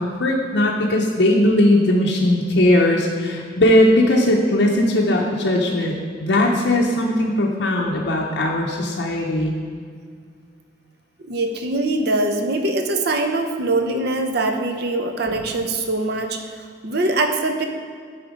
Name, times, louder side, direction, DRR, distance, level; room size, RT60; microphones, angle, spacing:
voice 1, 0.0-9.6, left 1 dB, 60° left, -1 dB, 0.7 m, -18 dB
voice 2, 11.3-17.7, right 2 dB, 55° right, 5 dB, 0.7 m, -23 dB
8.4 x 4.3 x 5.0 m, 2.1 s
head